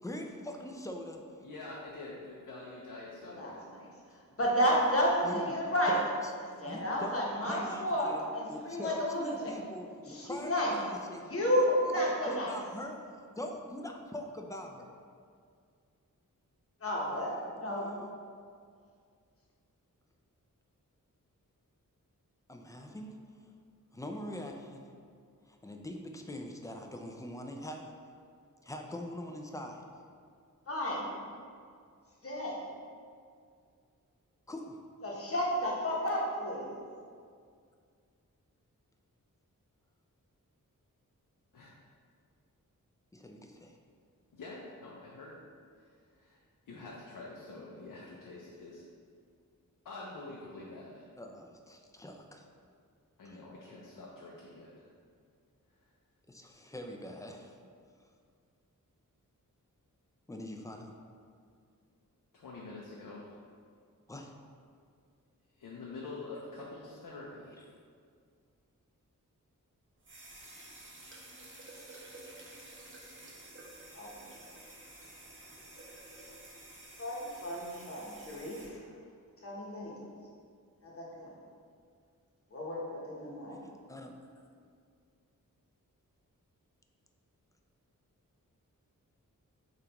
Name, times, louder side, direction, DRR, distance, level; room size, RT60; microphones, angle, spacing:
voice 1, 0.0-1.4 5.2-5.5 5.9-6.1 6.5-8.2 8.5-11.4 12.0-14.9 22.5-23.2 23.9-24.9 25.4-27.9 28.6-29.8 34.5-34.8 43.1-43.8 51.2-52.5 53.2-53.4 56.3-57.6 60.3-60.9 64.1-64.3 83.9-84.1, left 1 dB, 10° left, 3 dB, 0.4 m, -43 dB
voice 2, 1.4-3.6 41.5-41.7 44.3-45.4 45.8-46.4 46.7-48.8 49.8-51.1 53.2-54.9 62.3-63.4 65.6-67.6, left 2 dB, 75° left, -4 dB, 0.6 m, -46 dB
voice 3, 3.2-6.0 6.6-9.5 10.1-10.7 11.2-12.5 16.8-17.9 30.7-31.1 32.2-32.6 35.0-36.7 73.9-74.3 76.9-78.9 79.4-80.1 80.8-81.3 82.5-83.6, equal, 40° left, -3 dB, 1.0 m, -32 dB
sound 1, 70.0-78.7, right 1 dB, 35° right, 0.9 m, -51 dB
6.6 x 2.5 x 2.9 m, 2.2 s
wide cardioid pair, 85°, 33 cm